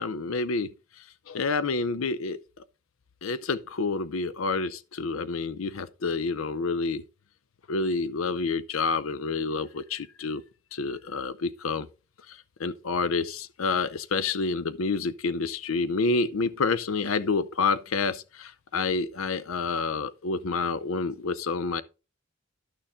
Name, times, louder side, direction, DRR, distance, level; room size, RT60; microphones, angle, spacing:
voice 1, 0.0-2.4 3.2-7.0 7.7-10.4 10.7-11.9 12.3-21.8, left 4 dB, 90° left, 0.6 m, -28 dB
11.0 x 6.7 x 3.6 m
head